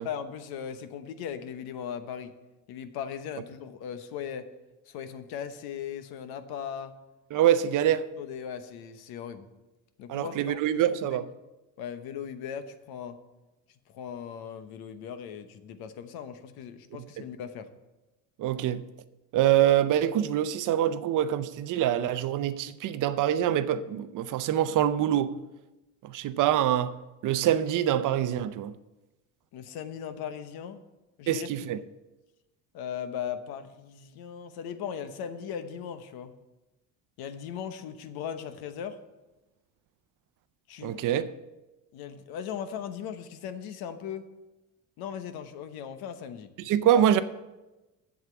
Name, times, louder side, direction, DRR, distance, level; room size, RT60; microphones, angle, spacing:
voice 1, 0.0-2.3 2.7-4.5 4.9-6.9 8.2-9.5 10.0-11.2 11.8-13.2 13.9-17.7 29.5-30.8 31.2-31.7 32.7-36.3 37.2-39.0 40.7-41.0 41.9-44.3 45.0-46.5 46.9-47.0, left 8 dB, 75° left, 1.0 m, -38 dB
voice 2, 7.3-8.0 10.1-11.2 18.4-18.8 19.3-25.3 26.0-27.0 27.2-28.7 31.3-31.8 40.8-41.3 46.6-47.2, right 11 dB, 55° right, 0.6 m, -25 dB
7.9 x 7.4 x 7.1 m
cardioid pair, 125°, 37 cm